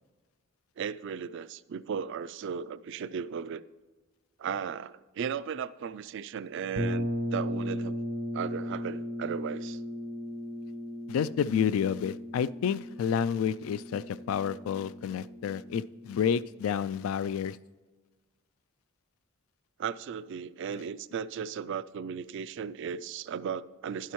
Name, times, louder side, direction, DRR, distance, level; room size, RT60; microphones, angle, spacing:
voice 1, 0.8-3.6 4.4-8.0 8.3-9.8 19.8-24.1, right 7 dB, 60° right, 0.3 m, -36 dB
sound 1, 6.8-16.4, equal, 90° right, 1.2 m, -37 dB
voice 2, 11.1-17.6, left 7 dB, 75° left, 0.3 m, -30 dB
11.5 x 11.0 x 3.1 m
head